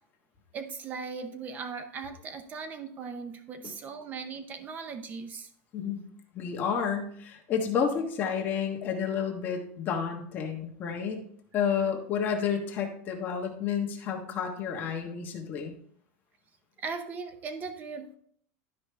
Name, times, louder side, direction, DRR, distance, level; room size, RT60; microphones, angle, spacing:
voice 1, 0.5-5.5 16.8-18.2, right 5 dB, 20° right, 8 dB, 0.7 m, -38 dB
voice 2, 5.7-6.0 6.3-11.2 11.5-15.8, left 7 dB, 25° left, 1 dB, 1.3 m, -30 dB
12.0 x 4.9 x 3.3 m, 0.62 s
supercardioid pair, 170°, 8 cm